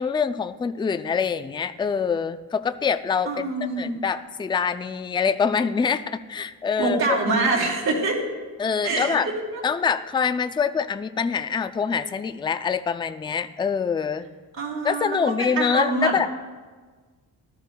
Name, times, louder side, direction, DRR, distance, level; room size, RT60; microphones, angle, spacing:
voice 1, 0.0-7.2 8.6-9.3 9.6-14.3 14.8-16.3, left 6 dB, 15° left, 10 dB, 0.3 m, -25 dB
voice 2, 3.2-3.9 6.8-8.3 8.8-9.2 9.5-9.6 14.6-16.1, right 3 dB, 65° right, -5 dB, 3.1 m, -25 dB
19.0 x 13.0 x 2.2 m, 1.4 s
cardioid pair, 130°, 39 cm